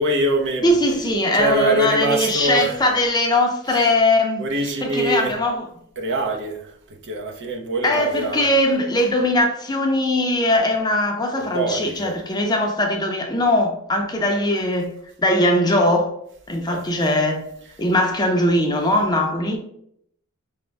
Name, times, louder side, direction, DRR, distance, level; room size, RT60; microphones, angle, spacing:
voice 1, 0.0-0.7 1.3-2.8 4.4-5.4 6.0-6.7 7.0-8.5 11.3-12.2 16.7-16.9, right 1 dB, 55° right, 0.7 m, -24 dB
voice 2, 0.6-5.7 7.8-14.9 15.2-16.1 16.5-17.4 17.8-19.6, left 1 dB, 20° left, 0.5 m, -20 dB
5.1 x 2.1 x 3.3 m
head